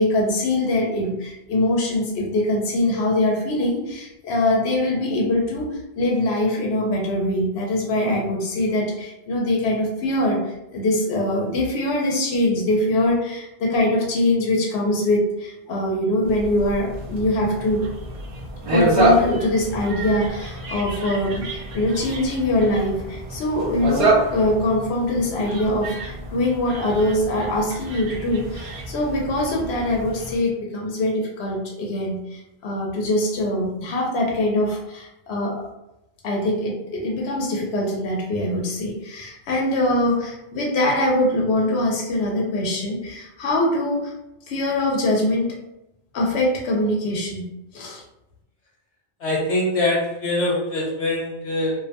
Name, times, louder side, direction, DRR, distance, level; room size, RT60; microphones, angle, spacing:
voice 1, 0.0-17.8 18.6-35.6 36.2-44.1 44.5-45.6 46.1-47.4 47.7-48.0, left 1 dB, 85° left, -1 dB, 0.8 m, -23 dB
sound 1, 16.2-30.4, right 2 dB, 50° right, 0.4 m, -27 dB
voice 2, 49.2-51.8, left 1 dB, 45° left, -3 dB, 0.9 m, -23 dB
2.4 x 2.1 x 2.7 m, 0.88 s
omnidirectional pair, 1.1 m